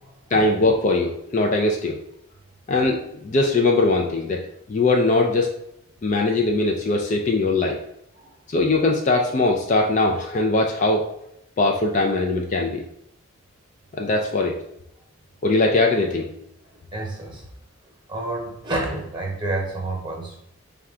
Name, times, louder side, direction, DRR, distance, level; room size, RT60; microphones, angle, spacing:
voice 1, 0.3-2.0 2.7-4.4 4.7-5.5 6.0-7.8 8.5-11.1 11.6-12.8 14.0-14.5 15.4-16.3, left 2 dB, 35° left, 2 dB, 0.3 m, -20 dB
voice 2, 16.9-17.4 18.1-20.4, right 2 dB, 20° right, -1 dB, 1.0 m, -29 dB
4.4 x 2.3 x 3.6 m, 0.77 s
head